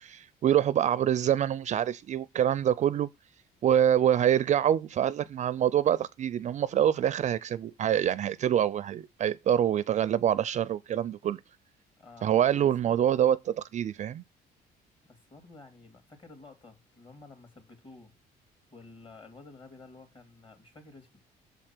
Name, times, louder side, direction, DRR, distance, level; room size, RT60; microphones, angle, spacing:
voice 1, 0.0-3.1 3.6-11.4 12.2-14.2, right 10 dB, 45° right, 0.4 m, -26 dB
voice 2, 12.0-12.4 12.8-13.0 15.0-18.1 18.7-21.1, left 3 dB, 30° left, 2.8 m, -51 dB
7.0 x 4.4 x 5.9 m
cardioid pair, 110°, 17 cm